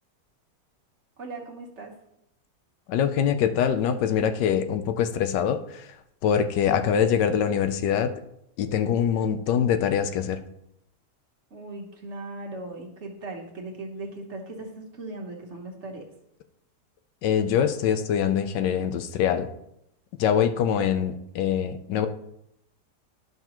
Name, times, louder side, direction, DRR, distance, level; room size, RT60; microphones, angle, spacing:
voice 1, 1.2-1.9 11.5-16.1, right 2 dB, 45° right, 1 dB, 1.2 m, -38 dB
voice 2, 2.9-5.9 6.2-8.1 8.6-10.4 17.2-19.5 20.2-22.1, left 8 dB, 85° left, 9 dB, 1.3 m, -24 dB
11.5 x 5.6 x 3.0 m, 0.78 s
omnidirectional pair, 1.8 m